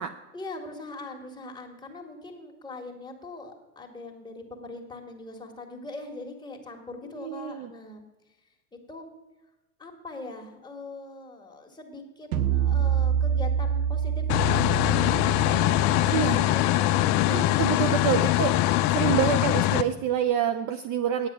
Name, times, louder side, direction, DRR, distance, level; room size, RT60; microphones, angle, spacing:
voice 1, 0.3-8.0 8.7-9.1 9.8-17.6, left 2 dB, 10° left, 1 dB, 1.8 m, -41 dB
voice 2, 7.2-7.7 16.1-16.4 17.3-18.6 18.9-21.3, right 8 dB, 40° right, 9 dB, 0.6 m, -27 dB
sound 1, 12.3-17.7, right 8 dB, 70° right, 0.9 m, -28 dB
sound 2, 14.3-19.8, left 15 dB, 40° left, 0.5 m, -22 dB
9.5 x 7.7 x 6.1 m, 1.0 s
hypercardioid pair, 100°, 45 cm